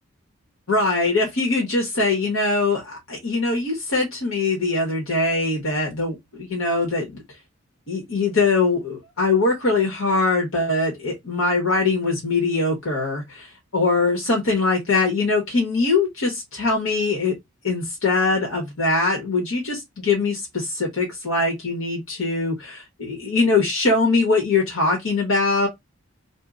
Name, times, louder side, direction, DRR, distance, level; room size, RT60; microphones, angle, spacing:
voice 1, 0.7-7.1 7.9-17.3 17.6-25.7, left 3 dB, 85° left, 1.2 m, -22 dB
2.7 x 2.1 x 3.7 m
head